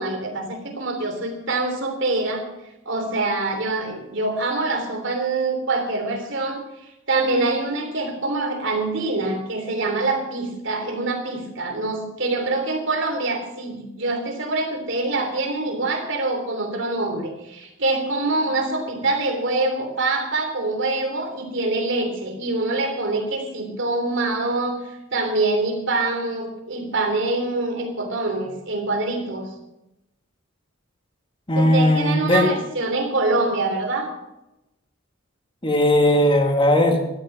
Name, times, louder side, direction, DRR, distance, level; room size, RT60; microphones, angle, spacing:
voice 1, 0.0-2.5 2.8-6.6 7.1-24.8 25.1-29.5 31.5-34.1, right 2 dB, 60° right, 3 dB, 3.2 m, -25 dB
voice 2, 31.5-32.5 35.6-37.0, left 1 dB, 25° left, 3 dB, 2.0 m, -18 dB
13.0 x 12.0 x 6.1 m, 0.92 s
head